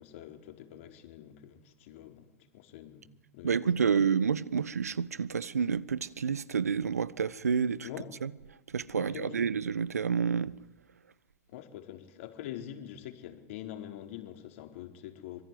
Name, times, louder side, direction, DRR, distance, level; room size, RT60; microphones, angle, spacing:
voice 1, 0.0-3.9 7.8-8.1 8.9-9.5 11.5-15.4, left 11 dB, 55° left, 4.5 m, -45 dB
voice 2, 3.4-7.9 8.2-8.3 8.7-10.5, right 6 dB, 85° right, 1.2 m, -29 dB
25.5 x 23.0 x 9.4 m
hypercardioid pair, 105°, 8 cm